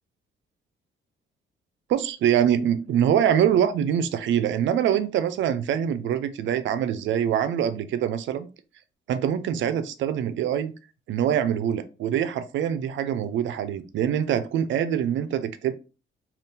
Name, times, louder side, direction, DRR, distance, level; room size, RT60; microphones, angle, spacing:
voice 1, 1.9-8.5 9.1-10.7 11.1-15.7, right 9 dB, 70° right, 0.5 m, -24 dB
2.6 x 2.4 x 3.6 m
cardioid pair, 90°, 20 cm